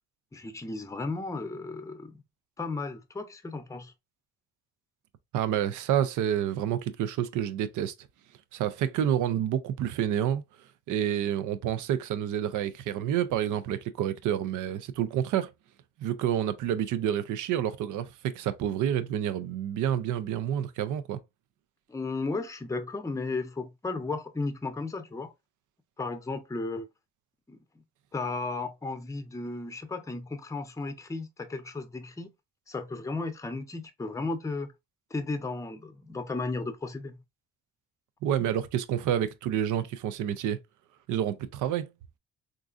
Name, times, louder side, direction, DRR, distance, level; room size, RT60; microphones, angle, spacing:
voice 1, 0.3-2.2 2.6-3.9 21.9-25.3 26.0-26.9 27.5-27.6 28.1-32.3 32.7-34.7 35.1-37.2, left 3 dB, 10° left, 0.6 m, -34 dB
voice 2, 5.3-7.9 8.5-10.4 10.9-15.5 16.0-21.2 38.2-40.6 41.1-41.9, right 10 dB, 85° right, 0.5 m, -28 dB
3.8 x 2.5 x 2.4 m
cardioid pair, 90°, 30 cm